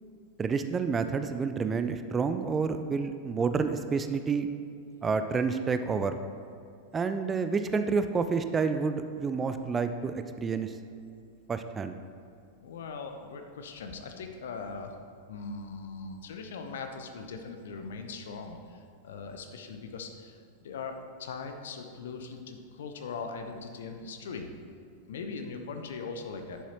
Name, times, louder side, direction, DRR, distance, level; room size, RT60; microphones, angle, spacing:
voice 1, 0.4-4.5 5.0-6.2 6.9-10.7 11.5-12.0, right 5 dB, 20° right, 9 dB, 0.4 m, -29 dB
voice 2, 12.6-14.9 15.3-20.4 20.6-24.5 25.1-26.6, left 4 dB, 60° left, 5 dB, 0.8 m, -40 dB
10.5 x 7.0 x 3.0 m, 2.4 s
figure-of-eight pair, 90°, 0 cm